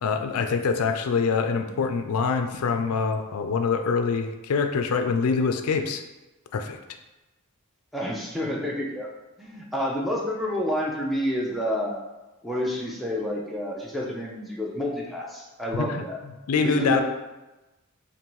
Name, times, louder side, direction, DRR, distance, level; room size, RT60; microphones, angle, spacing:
voice 1, 0.0-6.0 6.5-6.8 15.8-16.0 16.5-17.0, left 5 dB, 85° left, 6 dB, 0.4 m, -25 dB
voice 2, 7.9-9.1 9.4-12.0 12.4-16.2 16.6-17.0, equal, ahead, -3 dB, 0.5 m, -29 dB
5.2 x 2.6 x 3.0 m, 1.1 s
head